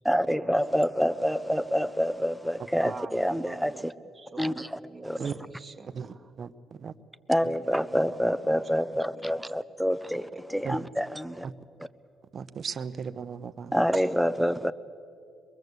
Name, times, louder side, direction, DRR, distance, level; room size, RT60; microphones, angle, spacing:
voice 1, 0.0-3.9 4.4-5.3 7.3-11.5 13.7-14.7, equal, ahead, 0.8 m, -27 dB
voice 2, 2.8-3.8 4.1-6.3 7.9-9.3 10.3-10.7 13.9-14.4, right 3 dB, 25° right, 1.6 m, -44 dB
voice 3, 5.9-6.9 7.4-7.5 10.6-10.8 11.4-11.5 12.3-13.7, right 6 dB, 45° right, 0.9 m, -36 dB
23.0 x 22.5 x 8.1 m
cardioid pair, 100°, 0 cm